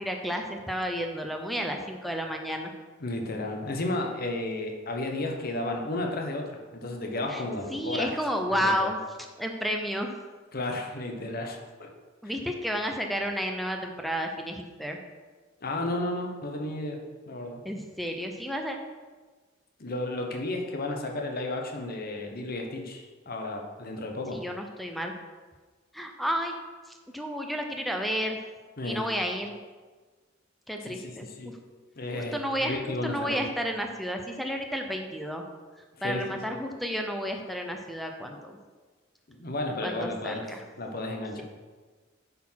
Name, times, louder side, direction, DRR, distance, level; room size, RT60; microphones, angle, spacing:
voice 1, 0.0-2.7 7.3-7.4 7.7-9.0 9.4-10.1 12.2-15.0 17.6-18.8 24.3-25.1 25.9-26.5 27.1-28.4 28.8-29.5 30.7-31.3 32.2-35.4 36.0-38.6 39.8-40.6, equal, ahead, 3 dB, 0.6 m, -31 dB
voice 2, 3.0-8.1 8.5-8.9 10.5-11.9 15.6-17.6 19.8-24.4 28.8-29.1 30.8-31.5 32.0-33.5 36.0-36.6 39.3-40.5 40.8-41.4, left 2 dB, 50° left, 3 dB, 1.0 m, -33 dB
8.5 x 4.2 x 5.7 m, 1.4 s
head